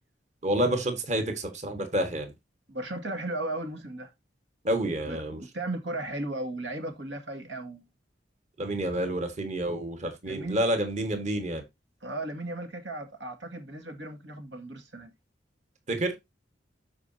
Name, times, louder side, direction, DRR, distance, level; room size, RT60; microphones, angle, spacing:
voice 1, 0.4-2.3 4.6-5.4 8.6-11.6 15.9-16.2, right 1 dB, 40° right, 1.5 m, -29 dB
voice 2, 2.7-4.1 5.1-7.8 10.3-10.6 12.0-15.1, right 2 dB, 90° right, 1.9 m, -36 dB
13.0 x 4.9 x 2.7 m
head